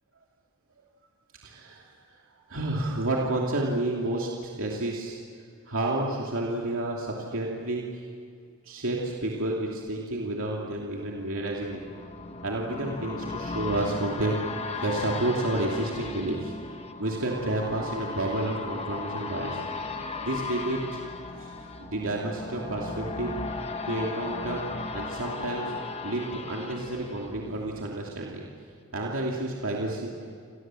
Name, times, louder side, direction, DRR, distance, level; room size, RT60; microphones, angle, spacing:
voice 1, 1.4-2.2 2.5-5.2 5.7-8.0 8.6-11.8 12.4-14.4 14.8-16.5 17.0-19.6 20.2-21.0 21.4-21.5 21.8-23.3 23.9-24.6 24.9-25.7 26.0-28.4 28.9-30.1, right 2 dB, 65° right, -2 dB, 2.8 m, -30 dB
sound 1, 10.3-28.1 28.5-28.6, left 3 dB, 30° left, 1.3 m, -37 dB
28.0 x 27.5 x 7.7 m, 2.3 s
head